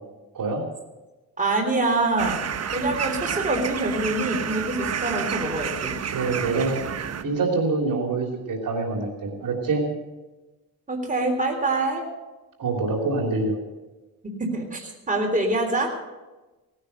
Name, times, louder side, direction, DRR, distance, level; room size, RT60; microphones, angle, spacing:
voice 1, 1.4-2.4 2.7-6.0 10.9-12.0 14.4-15.9, right 2 dB, 20° right, 2 dB, 3.5 m, -25 dB
sound 1, 2.2-7.2, right 7 dB, 40° right, 1.0 m, -30 dB
voice 2, 6.1-6.8 7.2-9.8 12.6-13.6, right 3 dB, 60° right, 2 dB, 3.2 m, -25 dB
18.0 x 9.9 x 6.7 m, 1.1 s
cardioid pair, 95°, 37 cm